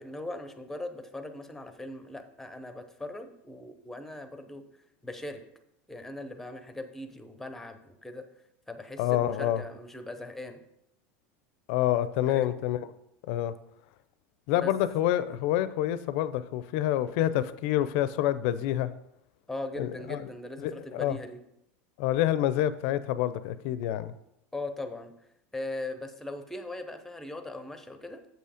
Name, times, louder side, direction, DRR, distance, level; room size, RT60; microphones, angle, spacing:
voice 1, 0.0-4.6 5.0-5.4 5.9-8.2 8.7-10.6 12.3-12.6 14.6-14.7 19.5-21.4 24.5-25.1 25.5-28.2, left 2 dB, 5° left, 8 dB, 0.8 m, -39 dB
voice 2, 9.0-9.6 11.7-12.8 13.3-13.5 14.5-18.9 19.8-20.2 20.6-21.2 22.0-24.1, left 12 dB, 65° left, 14 dB, 0.5 m, -27 dB
7.6 x 5.6 x 5.0 m, 0.79 s
supercardioid pair, 135°, 7 cm